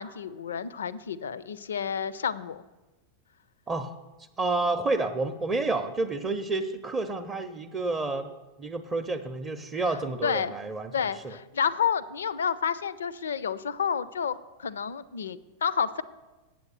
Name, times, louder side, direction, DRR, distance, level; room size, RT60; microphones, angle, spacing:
voice 1, 0.0-2.6 10.2-10.5 10.9-16.0, left 7 dB, 65° left, 17 dB, 0.4 m, -30 dB
voice 2, 4.4-8.3 8.6-11.4, right 3 dB, 25° right, 5 dB, 0.5 m, -30 dB
8.1 x 7.7 x 6.7 m, 1.1 s
figure-of-eight pair, 90°, 0 cm